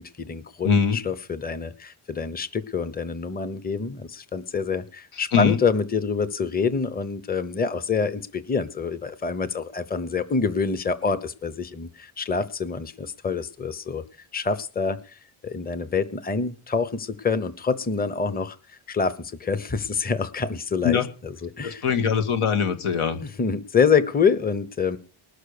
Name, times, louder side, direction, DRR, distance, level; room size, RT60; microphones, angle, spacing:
voice 1, 0.0-14.0 14.3-21.8 23.4-25.0, left 5 dB, 20° left, 15 dB, 0.9 m, -26 dB
voice 2, 0.6-1.0 5.3-5.6 20.8-21.1 21.6-23.2, left 7 dB, 85° left, 10 dB, 2.0 m, -22 dB
19.5 x 6.6 x 6.6 m, 0.39 s
cardioid pair, 110°, 50 cm